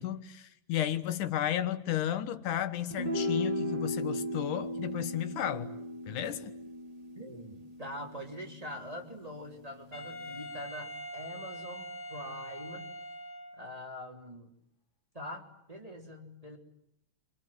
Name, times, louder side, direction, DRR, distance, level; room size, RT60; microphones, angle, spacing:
voice 1, 0.0-5.7 6.1-6.5, left 11 dB, 90° left, 2.8 m, -33 dB
sound 1, 2.9-9.4, equal, 30° right, 7.1 m, -37 dB
voice 2, 7.1-12.9 13.5-14.5 15.1-16.6, equal, 10° right, 3.4 m, -44 dB
Wind instrument woodwind instrument, 9.9-13.8, equal, 20° left, 5.3 m, -43 dB
30.0 x 26.0 x 7.7 m
omnidirectional pair, 3.5 m